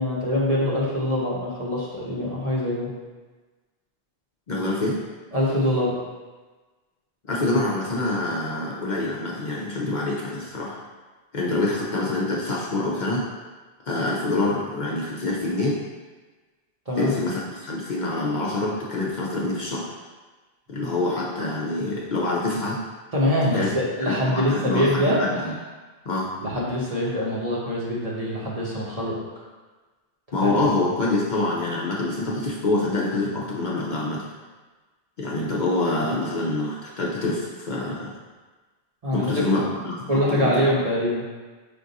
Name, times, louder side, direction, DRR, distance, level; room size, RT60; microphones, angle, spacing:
voice 1, 0.0-2.9 5.3-6.0 16.9-17.1 20.8-20.9 23.1-25.4 26.4-29.2 30.4-30.5 39.0-39.5 40.1-41.2, left 1 dB, 40° right, -6 dB, 0.9 m, -24 dB
voice 2, 4.5-5.0 7.3-10.8 11.3-13.2 13.9-15.8 17.0-19.9 20.7-22.8 23.5-23.7 24.1-25.5 26.1-26.3 30.3-34.3 35.2-38.1 39.1-40.6, left 2 dB, 50° left, -4 dB, 0.7 m, -26 dB
5.2 x 2.5 x 3.9 m, 1.3 s
omnidirectional pair, 1.1 m